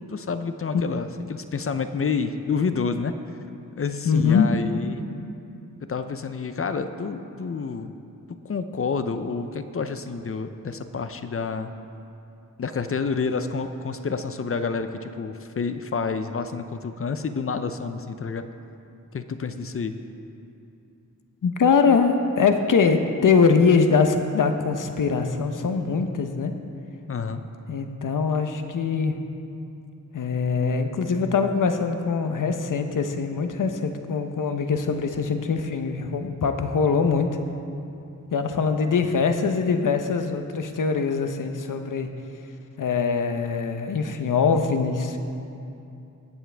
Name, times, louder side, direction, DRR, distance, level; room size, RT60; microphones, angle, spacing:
voice 1, 0.0-3.1 3.8-5.0 5.9-7.9 8.4-11.7 12.6-18.4 19.1-20.0 27.1-27.4, left 5 dB, 45° left, 9 dB, 0.6 m, -29 dB
voice 2, 4.0-4.5 21.4-26.5 27.7-29.1 30.1-37.3 38.3-42.1 42.8-45.2, left 5 dB, 75° left, 7 dB, 0.8 m, -22 dB
20.0 x 7.3 x 3.4 m, 2.7 s
wide cardioid pair, 80°, 32 cm